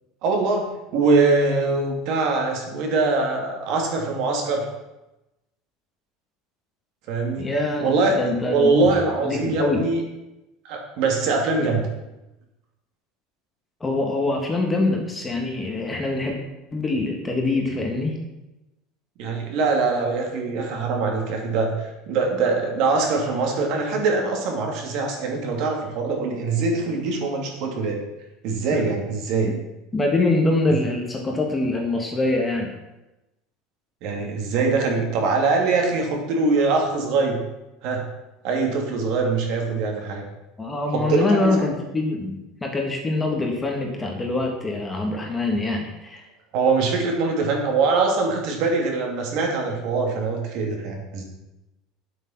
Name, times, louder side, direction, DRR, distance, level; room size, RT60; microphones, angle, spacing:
voice 1, 0.2-4.7 7.1-7.5 7.8-8.1 8.5-10.0 10.6-11.8 19.2-28.0 28.4-29.5 34.0-37.4 37.8-38.0 38.4-40.2 40.9-41.6 46.5-51.2, right 3 dB, 50° right, 1 dB, 2.7 m, -23 dB
voice 2, 7.4-8.7 9.2-9.9 13.8-16.4 16.7-18.2 28.7-28.8 29.9-32.7 40.6-46.2, left 2 dB, 10° left, 1 dB, 1.5 m, -24 dB
10.0 x 7.8 x 5.9 m, 0.98 s
cardioid pair, 165°, 0 cm